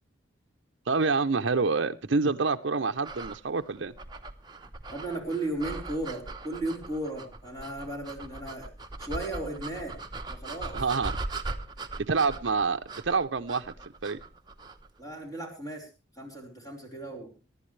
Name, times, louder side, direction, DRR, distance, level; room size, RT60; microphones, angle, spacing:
voice 1, 0.9-3.9 10.7-11.1 12.1-13.7 14.0-14.2, right 4 dB, 65° right, 6 dB, 0.6 m, -27 dB
sound 1, 3.0-14.9, right 3 dB, 20° right, 1.0 m, -40 dB
voice 2, 4.9-8.7 9.0-10.0 10.3-10.8 15.0-15.9 16.2-17.4, right 1 dB, 20° left, 0 dB, 4.4 m, -35 dB
23.5 x 11.0 x 3.2 m, 0.31 s
head